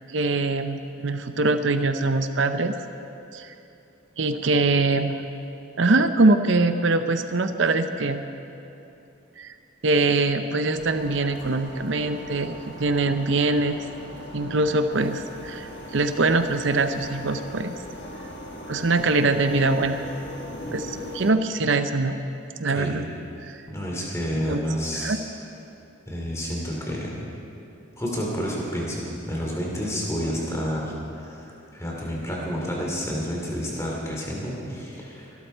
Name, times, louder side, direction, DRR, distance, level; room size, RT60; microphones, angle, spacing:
voice 1, 0.1-2.8 3.3-3.5 4.2-5.2 5.8-8.2 9.4-9.5 9.8-12.5 12.8-13.8 14.3-17.7 18.7-20.0 20.7-22.2 22.6-23.1 23.4-23.6 24.3-24.6 25.0-25.2, right 3 dB, 70° right, 9 dB, 0.7 m, -23 dB
sound 1, 10.7-21.3, equal, 60° left, 1.5 m, -39 dB
voice 2, 22.7-23.1 23.7-25.2 26.1-27.2 28.0-35.3, equal, 15° left, -3 dB, 2.9 m, -30 dB
24.0 x 12.5 x 4.5 m, 2.8 s
head